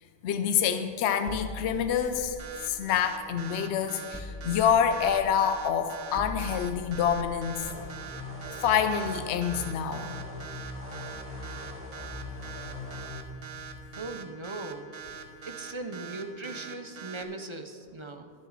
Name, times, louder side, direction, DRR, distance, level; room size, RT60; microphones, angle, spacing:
voice 1, 0.2-2.3 2.6-7.7 8.6-10.1, left 8 dB, 70° left, 9 dB, 0.8 m, -27 dB
sound 1, 1.3-3.6 4.1-8.8, left 3 dB, 15° left, 0.7 m, -42 dB
sound 2, 2.4-17.2, right 7 dB, 55° right, 1.1 m, -43 dB
sound 3, 7.6-13.1, left 2 dB, 10° right, 2.2 m, -41 dB
voice 2, 14.0-14.9 15.4-18.3, right 2 dB, 30° right, 6 dB, 0.6 m, -39 dB
20.5 x 7.2 x 4.1 m, 2.2 s
omnidirectional pair, 1.2 m